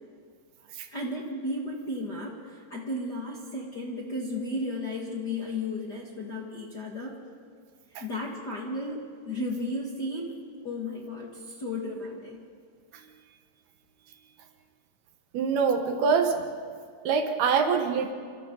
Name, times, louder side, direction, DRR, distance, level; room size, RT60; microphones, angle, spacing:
voice 1, 0.9-7.1 8.0-12.4, left 1 dB, 40° left, -3 dB, 1.6 m, -34 dB
voice 2, 15.3-16.5 17.0-18.1, right 5 dB, 75° right, 5 dB, 3.3 m, -25 dB
28.5 x 26.5 x 4.0 m, 2.1 s
omnidirectional pair, 4.7 m